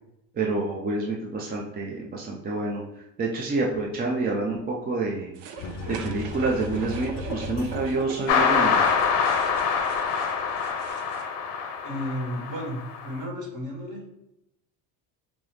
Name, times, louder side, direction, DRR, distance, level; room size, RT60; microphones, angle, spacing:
voice 1, 0.3-5.3 5.9-8.9, right 3 dB, 25° right, -1 dB, 0.5 m, -28 dB
sound 1, 5.3-11.3, right 5 dB, 75° right, 0.6 m, -40 dB
sound 2, 5.6-8.3, left 3 dB, 45° left, 0.5 m, -36 dB
sound 3, 8.3-13.1, left 6 dB, 85° left, 0.8 m, -25 dB
voice 2, 11.8-14.2, equal, 50° right, -1 dB, 1.5 m, -33 dB
5.2 x 2.0 x 3.2 m, 0.84 s
supercardioid pair, 100°, 41 cm